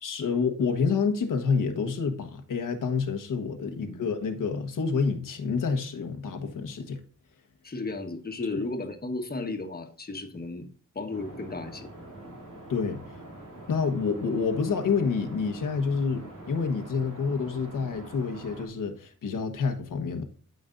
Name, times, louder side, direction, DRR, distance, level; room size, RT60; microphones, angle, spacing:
voice 1, 0.0-7.0 12.7-13.0 13.7-20.2, left 5 dB, 90° left, 1.3 m, -28 dB
voice 2, 3.7-4.0 7.6-10.7 10.9-11.9, left 3 dB, 30° left, 1.3 m, -34 dB
sound 1, 11.1-18.7, right 1 dB, 85° right, 2.8 m, -44 dB
13.0 x 5.3 x 2.6 m
wide cardioid pair, 110°, 31 cm